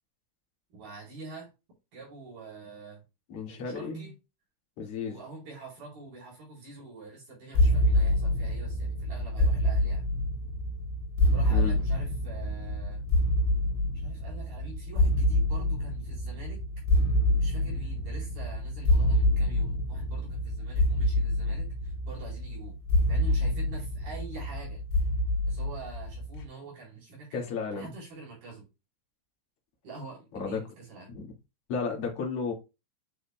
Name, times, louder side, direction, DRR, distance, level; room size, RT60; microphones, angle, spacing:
voice 1, 0.7-1.5 1.9-3.0 3.5-4.2 5.0-10.0 11.3-13.0 13.9-16.6 17.4-22.8 23.1-24.8 25.5-27.5 27.7-28.6 29.8-31.1, right 3 dB, 50° right, 5.6 m, -45 dB
voice 2, 3.3-4.1 4.8-5.1 11.5-11.8 27.3-27.9 30.3-30.6 31.1-31.3 31.7-32.5, left 5 dB, 45° left, 2.2 m, -33 dB
sound 1, 7.5-26.4, left 1 dB, 80° left, 4.0 m, -27 dB
9.8 x 6.4 x 2.3 m
omnidirectional pair, 5.5 m